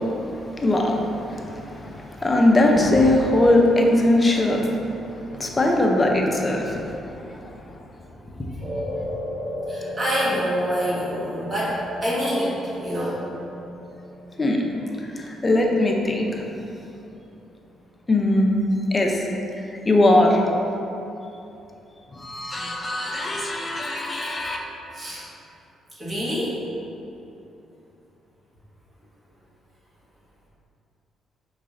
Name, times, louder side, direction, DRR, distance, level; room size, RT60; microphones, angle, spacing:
voice 1, 0.0-7.5 8.4-8.5 14.4-14.6 15.2-16.4 18.1-19.3 19.9-20.4 22.1-24.6, left 1 dB, 25° left, 0 dB, 0.5 m, -21 dB
sound 1, 8.6-17.1, left 1 dB, 70° right, 1.0 m, -36 dB
voice 2, 9.7-13.2 22.6-22.7 24.9-25.2 26.0-26.6, equal, 35° right, -8 dB, 1.4 m, -26 dB
4.7 x 3.1 x 2.5 m, 2.9 s
cardioid pair, 90°, 0 cm